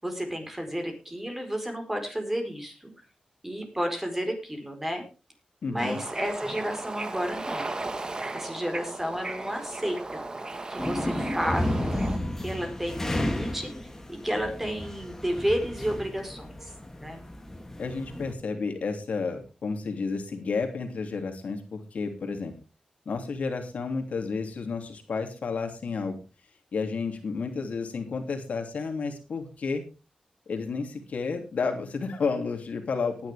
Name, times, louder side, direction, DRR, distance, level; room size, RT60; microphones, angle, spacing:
voice 1, 0.0-2.9 3.4-5.0 5.7-7.7 8.3-10.2 10.7-11.8 12.4-16.7 17.0-17.2, equal, 10° right, 4 dB, 4.5 m, -31 dB
voice 2, 5.6-6.0 17.8-22.5 23.0-26.2 26.7-29.8 30.5-33.3, left 4 dB, 80° left, 4 dB, 2.9 m, -31 dB
Bird / Ocean, 5.8-12.2, right 2 dB, 35° right, 1.5 m, -36 dB
sound 1, 10.8-18.3, left 1 dB, 15° left, 2.7 m, -33 dB
18.5 x 10.5 x 3.5 m, 0.32 s
wide cardioid pair, 95°, 2 cm